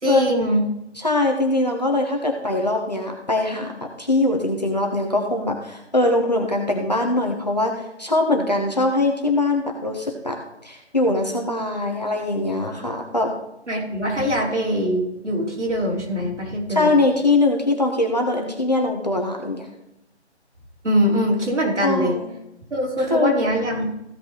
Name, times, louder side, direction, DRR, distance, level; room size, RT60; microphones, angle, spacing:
voice 1, 0.0-0.6 13.7-17.0 20.8-22.1 22.7-23.9, equal, 80° right, -2 dB, 4.6 m, -22 dB
voice 2, 1.0-13.3 16.7-19.7 21.8-22.3 23.1-23.3, left 2 dB, 35° left, 1 dB, 1.3 m, -22 dB
15.0 x 5.8 x 5.0 m, 0.84 s
figure-of-eight pair, 180°, 35 cm